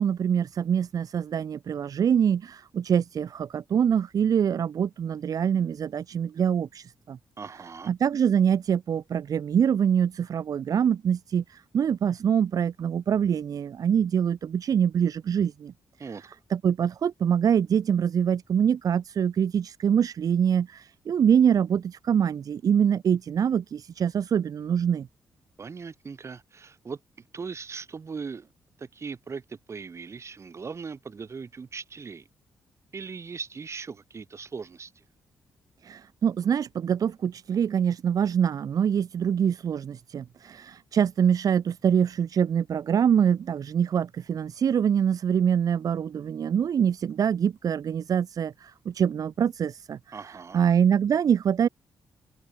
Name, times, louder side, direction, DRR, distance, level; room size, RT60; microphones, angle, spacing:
voice 1, 0.0-7.2 7.9-15.7 16.5-25.1 35.8-50.0 50.5-51.7, right 8 dB, 60° right, 0.8 m, -24 dB
voice 2, 7.4-7.9 16.0-16.3 25.6-28.5 28.8-32.3 32.9-35.1 50.1-50.6, right 5 dB, 40° right, 7.1 m, -39 dB
cardioid pair, 85°, 7 cm